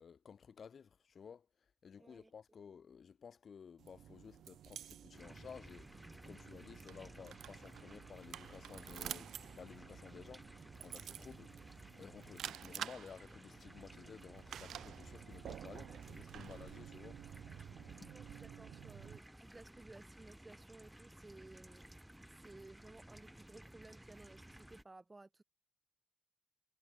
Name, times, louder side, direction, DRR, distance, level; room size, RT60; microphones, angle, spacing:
voice 1, 0.0-10.4 10.8-11.6 12.0-17.3 18.0-18.1, left 6 dB, 60° left, 0.6 m, -55 dB
voice 2, 2.0-2.3 15.9-16.0 16.4-16.6 17.9-21.9 22.4-25.4, right 2 dB, 25° right, 6.1 m, -58 dB
sound 1, 3.8-19.2, right 10 dB, 75° right, 0.6 m, -51 dB
sound 2, 5.1-24.8, right 1 dB, 10° right, 4.5 m, -57 dB
hypercardioid pair, 40°, 0 cm